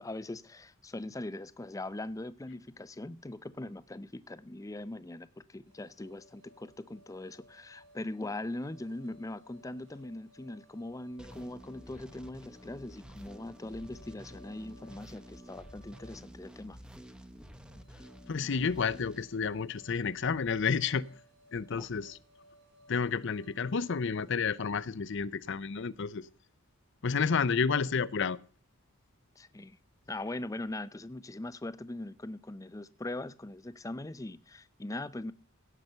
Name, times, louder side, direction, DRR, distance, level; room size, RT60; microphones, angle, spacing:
voice 1, 0.0-16.8 21.7-21.9 29.4-29.8 30.1-35.3, left 2 dB, 15° left, 0.5 m, -41 dB
sound 1, 5.7-24.5, equal, 60° right, 6.5 m, -62 dB
sound 2, 11.2-20.0, equal, 5° right, 0.8 m, -50 dB
voice 2, 18.3-21.1 21.5-22.2 22.9-26.3 27.0-28.4, left 5 dB, 60° left, 0.6 m, -30 dB
17.0 x 5.8 x 6.7 m
head